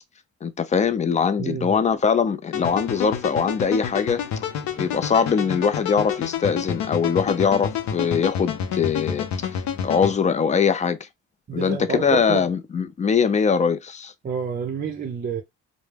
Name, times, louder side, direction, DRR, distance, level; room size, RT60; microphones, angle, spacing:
voice 1, 0.4-4.2 4.8-9.3 9.8-11.0 11.5-14.1, left 6 dB, 25° left, 0.4 m, -22 dB
voice 2, 1.4-1.8 11.5-12.5 14.2-15.4, right 6 dB, 30° right, 0.5 m, -29 dB
sound 1, 2.5-10.1, left 8 dB, 70° left, 0.6 m, -29 dB
2.2 x 2.0 x 3.2 m
cardioid pair, 90°, 30 cm